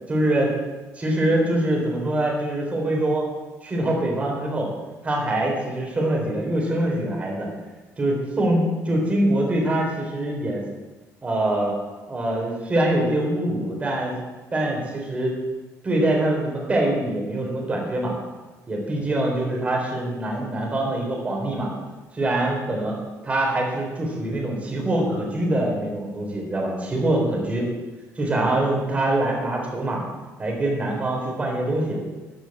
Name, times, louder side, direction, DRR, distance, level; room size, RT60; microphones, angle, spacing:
voice 1, 0.1-0.5 1.0-3.2 3.6-4.7 5.0-7.5 8.0-10.6 11.2-11.7 12.1-14.2 14.5-15.4 15.8-18.1 18.7-21.7 22.1-22.9 23.2-27.7 28.2-30.0 30.4-32.0, right 1 dB, 20° right, -1 dB, 3.8 m, -24 dB
14.0 x 6.3 x 8.7 m, 1.2 s
cardioid pair, 145°, 6 cm